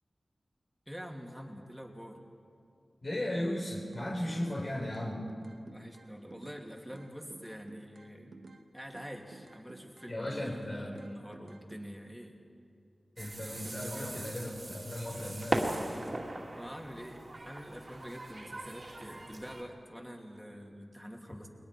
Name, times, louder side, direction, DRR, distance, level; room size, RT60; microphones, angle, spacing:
voice 1, 0.9-2.2 5.7-8.3 8.7-12.4 13.6-14.2 16.5-21.5, equal, ahead, 1 dB, 2.7 m, -46 dB
voice 2, 3.0-5.3 10.1-11.1 13.2-15.8, left 1 dB, 50° left, -4 dB, 4.0 m, -36 dB
sound 1, 3.9-4.6 4.9-6.6 6.9-8.6 8.9-10.6 10.9-11.8, right 3 dB, 70° right, 1.3 m, -53 dB
sound 2, 13.2-19.6, right 1 dB, 45° right, 2.4 m, -39 dB
29.5 x 21.5 x 4.5 m, 2.4 s
wide cardioid pair, 70°, 0 cm